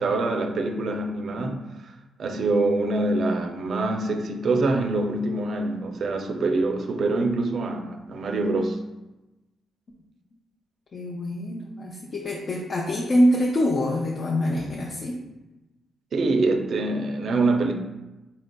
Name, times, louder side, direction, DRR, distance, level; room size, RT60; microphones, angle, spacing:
voice 1, 0.0-1.7 2.2-8.8 16.1-17.7, right 2 dB, 55° right, 4 dB, 0.4 m, -25 dB
voice 2, 10.9-15.2, equal, 45° left, -2 dB, 0.5 m, -24 dB
4.3 x 3.8 x 2.2 m, 1.0 s
cardioid pair, 115°, 0 cm